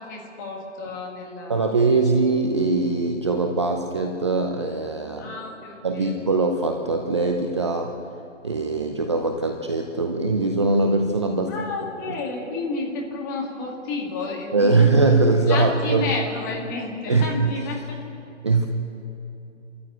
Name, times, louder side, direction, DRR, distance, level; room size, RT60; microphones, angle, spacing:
voice 1, 0.0-1.7 5.2-6.2 11.5-14.9 15.5-18.0, left 3 dB, 15° left, 0 dB, 2.0 m, -31 dB
voice 2, 1.5-5.3 5.8-7.9 8.4-11.7 12.1-12.2 14.5-16.1 17.1-17.5 18.4-18.7, right 3 dB, 25° right, 3 dB, 0.8 m, -21 dB
26.0 x 14.0 x 8.8 m, 2.7 s
hypercardioid pair, 170°, 37 cm